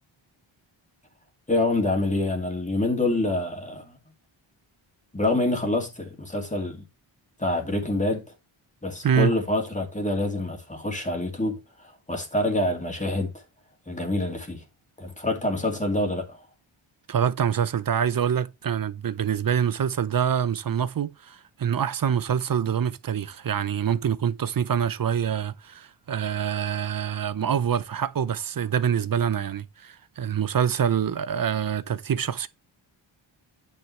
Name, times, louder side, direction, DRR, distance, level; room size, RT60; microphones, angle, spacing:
voice 1, 1.5-4.0 5.1-6.8 7.4-8.2 8.8-13.4 13.9-14.6 15.0-16.4, left 2 dB, 15° left, 2.5 m, -26 dB
voice 2, 17.1-32.5, right 8 dB, 45° right, 0.7 m, -25 dB
9.2 x 6.6 x 3.3 m
wide cardioid pair, 95°, 49 cm